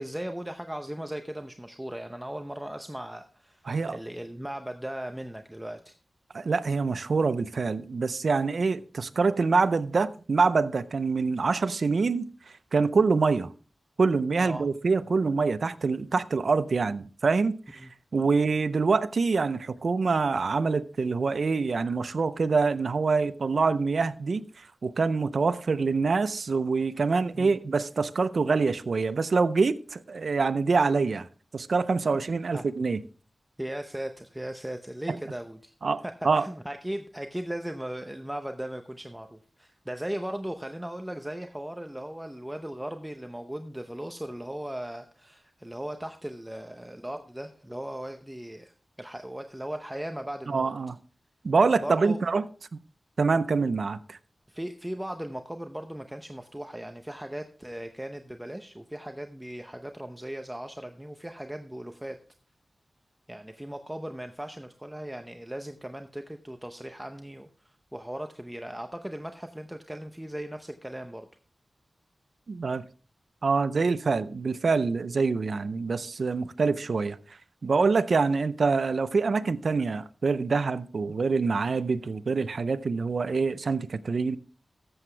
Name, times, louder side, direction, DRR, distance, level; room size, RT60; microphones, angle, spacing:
voice 1, 0.0-5.9 14.4-14.7 17.8-17.9 27.3-27.6 32.1-32.2 32.5-32.7 33.6-35.7 36.0-50.7 51.8-52.2 54.5-62.2 63.3-71.3, right 1 dB, 10° right, 0.7 m, -38 dB
voice 2, 3.7-4.0 6.3-12.3 12.7-13.5 14.0-17.8 18.1-31.3 31.5-33.0 35.1-35.2 35.8-36.5 50.5-51.0 51.4-52.4 53.2-54.2 72.5-72.9 73.4-77.2 77.6-84.4, right 4 dB, 70° right, 0.6 m, -25 dB
13.5 x 7.8 x 3.3 m
wide cardioid pair, 75°, 0 cm